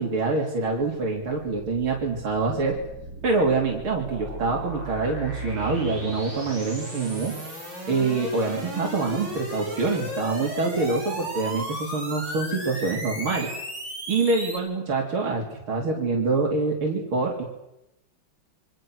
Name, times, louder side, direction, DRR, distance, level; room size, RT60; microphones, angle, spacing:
voice 1, 0.0-2.8 3.2-7.3 7.9-13.5 14.1-17.4, right 3 dB, 80° right, -1 dB, 4.0 m, -25 dB
sound 1, 1.3-14.6, right 1 dB, 60° right, 8.6 m, -35 dB
28.0 x 24.0 x 6.4 m, 0.89 s
omnidirectional pair, 2.2 m